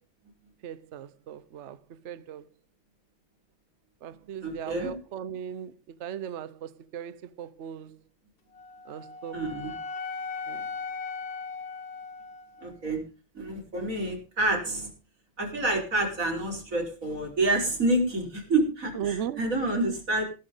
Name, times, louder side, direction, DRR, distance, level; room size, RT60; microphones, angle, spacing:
voice 1, 0.6-2.4 4.0-8.0 8.9-9.4 10.5-10.7 18.9-19.4, right 9 dB, 60° right, 0.7 m, -38 dB
voice 2, 4.4-4.9 9.3-9.8 12.6-13.0 13.4-14.9 15.4-20.2, right 2 dB, 35° right, 5.2 m, -28 dB
Wind instrument woodwind instrument, 8.5-12.7, left 4 dB, 65° left, 2.1 m, -38 dB
17.0 x 13.0 x 3.9 m
omnidirectional pair, 2.3 m